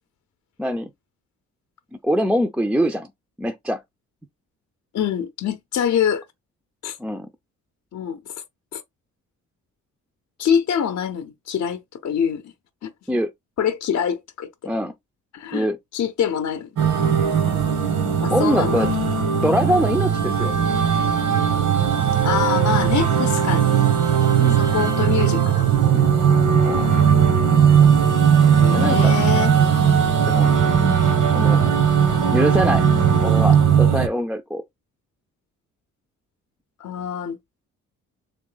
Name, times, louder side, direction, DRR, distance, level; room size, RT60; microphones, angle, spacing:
voice 1, 0.6-0.9 2.0-3.1 3.4-3.8 7.0-7.3 13.1-13.3 14.6-14.9 15.5-15.8 18.3-18.9 19.4-20.6 24.4-24.6 26.6-26.9 28.7-29.2 30.3-30.5 31.3-31.7 32.3-32.9 33.2-34.6, equal, 5° right, 0.4 m, -23 dB
voice 2, 4.9-6.2 6.8-7.0 7.9-8.3 8.7-8.8 10.4-12.5 12.8-12.9 13.6-14.7 15.3-15.7 15.9-16.7 18.2-18.9 22.2-23.7 24.5-26.0 28.6-29.5 36.8-37.4, left 8 dB, 60° left, 0.7 m, -25 dB
sound 1, 16.8-34.1, right 7 dB, 80° right, 1.5 m, -18 dB
3.6 x 3.2 x 3.8 m
cardioid pair, 100°, 31 cm